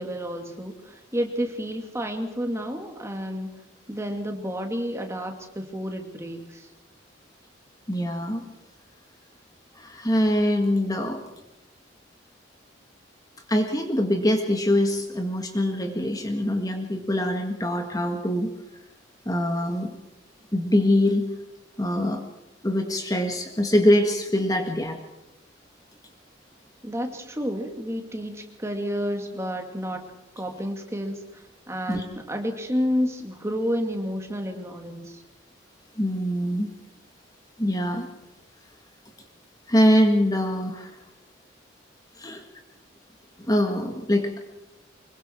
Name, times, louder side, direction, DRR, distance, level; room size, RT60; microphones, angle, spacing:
voice 1, 0.0-3.5 3.9-6.7 26.8-35.2, equal, 15° right, 4 dB, 2.4 m, -30 dB
voice 2, 7.9-8.4 9.8-11.2 13.5-18.5 19.3-19.9 20.5-21.3 21.8-22.2 22.6-25.0 31.9-32.0 36.0-36.8 37.6-38.1 39.7-40.9 42.2-42.4 43.5-44.3, left 1 dB, 20° left, 4 dB, 1.7 m, -23 dB
24.5 x 22.5 x 4.6 m, 0.97 s
head